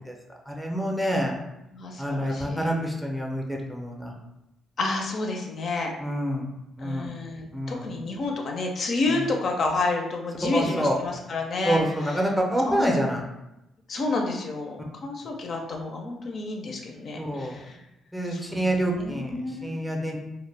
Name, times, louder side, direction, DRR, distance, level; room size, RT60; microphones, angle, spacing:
voice 1, 0.5-1.4 2.0-4.1 6.0-6.5 6.8-7.1 7.5-7.9 9.1-9.2 10.5-11.0 11.6-13.2 17.2-17.6 18.1-20.2, equal, 5° right, -1 dB, 0.5 m, -27 dB
voice 2, 1.7-2.7 4.8-5.9 6.8-12.3 12.6-13.1 13.9-17.8 18.2-19.8, left 3 dB, 55° left, 1 dB, 0.4 m, -30 dB
2.1 x 2.0 x 3.2 m, 0.91 s
cardioid pair, 90°, 0 cm